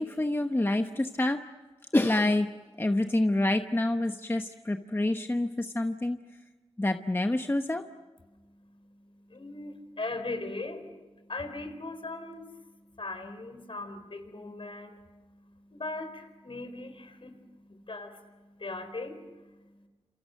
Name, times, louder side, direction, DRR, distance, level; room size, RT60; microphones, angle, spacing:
voice 1, 0.0-1.4 1.9-2.5 2.8-6.2 6.8-7.8, left 1 dB, 20° left, 6 dB, 0.9 m, -27 dB
voice 2, 8.3-19.9, left 2 dB, 55° left, 8 dB, 4.0 m, -40 dB
29.0 x 28.0 x 6.4 m, 1.2 s
wide cardioid pair, 75°, 11 cm